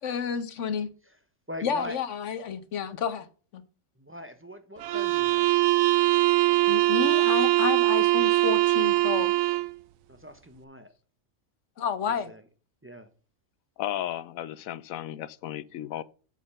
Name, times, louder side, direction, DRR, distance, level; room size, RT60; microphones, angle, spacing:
voice 1, 0.0-0.9 1.6-3.3 3.5-3.6 6.7-9.3 11.8-12.3, left 7 dB, 65° left, 1.2 m, -30 dB
voice 2, 1.5-2.0 4.0-5.6 10.1-10.9 12.3-12.4 12.8-13.1, equal, 10° right, 0.7 m, -41 dB
sound 1, 4.8-9.8, right 17 dB, 80° right, 1.0 m, -22 dB
voice 3, 13.8-16.0, left 12 dB, 80° left, 1.0 m, -34 dB
8.3 x 5.2 x 5.5 m
omnidirectional pair, 1.4 m